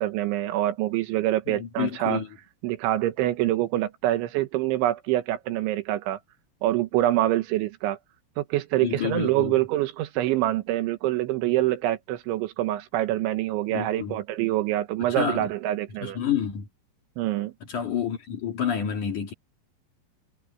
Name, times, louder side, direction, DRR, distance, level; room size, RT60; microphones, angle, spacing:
voice 1, 0.0-2.2 2.6-6.2 6.6-8.0 8.4-16.2 17.2-17.5, right 14 dB, 85° right, 3.5 m, -25 dB
voice 2, 1.5-2.3 8.8-9.6 13.7-14.2 15.0-15.5 16.0-16.7 17.6-19.3, left 8 dB, 50° left, 3.5 m, -29 dB
omnidirectional pair, 5.3 m